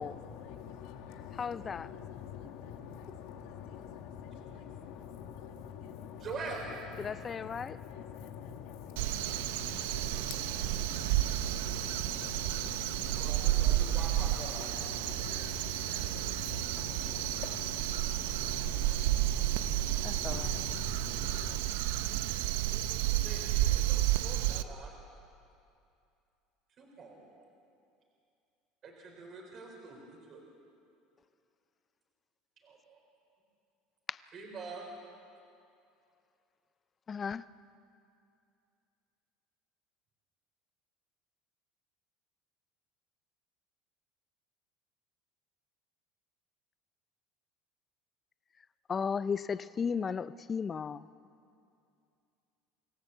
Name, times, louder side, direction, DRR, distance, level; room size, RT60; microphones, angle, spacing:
voice 1, 0.0-21.6, left 8 dB, 70° left, 4 dB, 2.2 m, -45 dB
voice 2, 1.3-1.9 7.0-7.8 16.8-17.0 20.0-20.6 34.1-34.2 37.1-37.4 48.9-51.1, left 6 dB, 25° left, 16 dB, 0.5 m, -35 dB
voice 3, 6.2-6.6 13.2-14.7 15.0-15.4 22.7-24.9 26.8-27.3 28.8-30.0 30.3-30.4 32.6-33.0 34.3-34.8, right 4 dB, 35° right, 1 dB, 4.0 m, -45 dB
Crow, 9.0-24.6, right 14 dB, 90° right, 0.7 m, -31 dB
25.5 x 16.0 x 7.8 m, 2.5 s
cardioid pair, 140°, 0 cm